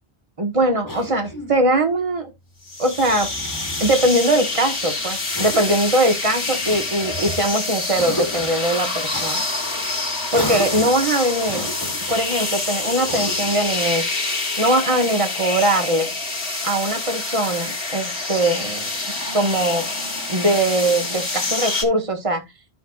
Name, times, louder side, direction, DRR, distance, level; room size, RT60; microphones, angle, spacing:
voice 1, 0.4-2.3 2.8-3.3 3.8-9.4 10.3-11.7 12.1-14.0 14.6-16.1 16.6-18.9 19.3-19.9 20.3-22.4, right 1 dB, 30° right, 1.5 m, -21 dB
Cough, 0.9-1.6 3.0-4.1 5.3-5.9 6.7-7.5 7.9-8.6 9.1-9.3 10.3-11.0 11.4-12.2 13.1-13.6, left 1 dB, 20° left, 1.6 m, -32 dB
sound 1, 2.7-21.8, left 3 dB, 85° left, 2.5 m, -26 dB
13.5 x 4.8 x 2.4 m
omnidirectional pair, 1.1 m